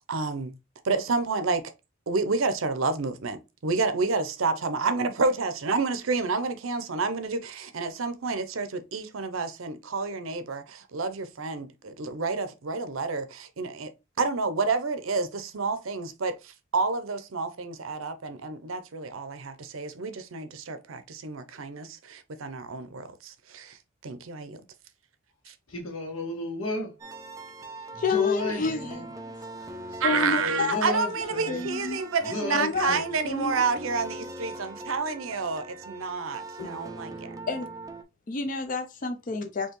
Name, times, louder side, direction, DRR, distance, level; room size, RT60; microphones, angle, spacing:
voice 1, 0.1-0.5 0.8-1.7 2.1-13.9 14.2-24.6 25.5-25.6 30.0-37.4, right 4 dB, 70° right, 0.6 m, -29 dB
voice 2, 25.7-27.0 27.9-29.1 29.6-31.7 32.2-33.1, left 1 dB, 80° left, 1.7 m, -34 dB
sound 1, 27.0-38.0, right 2 dB, 15° right, 0.4 m, -41 dB
voice 3, 28.0-29.0 29.3-29.4 30.0-30.9 31.2-32.0 32.5-33.0 33.2-33.5 36.6-36.7 37.5-37.7 38.3-39.7, left 4 dB, 40° left, 0.5 m, -29 dB
4.5 x 3.0 x 3.0 m
head